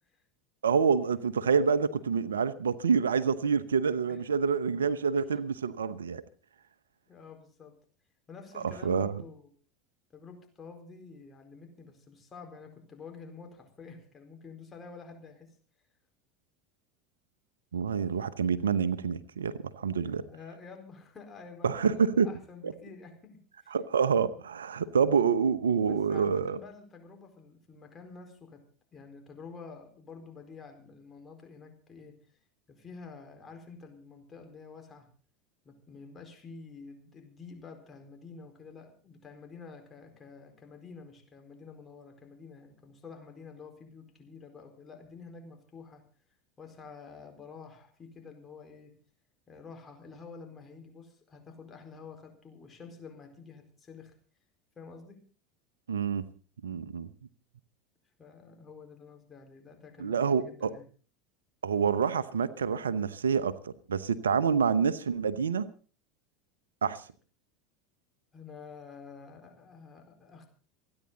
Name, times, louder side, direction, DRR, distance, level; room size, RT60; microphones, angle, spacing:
voice 1, 0.6-6.2 8.6-9.1 17.7-20.2 21.6-22.3 22.6-22.7 23.7-26.6 55.9-56.2 56.6-57.1 60.0-60.7 61.6-65.7 66.8-67.0, right 6 dB, 85° right, 0.8 m, -27 dB
voice 2, 7.1-7.8 8.3-9.5 10.1-15.6 20.0-23.8 25.9-28.6 28.9-32.4 32.7-35.1 35.6-46.1 46.6-49.0 49.5-54.1 54.8-55.2 58.2-60.8 68.3-70.5, left 5 dB, 25° left, 4.5 m, -49 dB
27.5 x 9.8 x 4.0 m
hypercardioid pair, 80°, 0 cm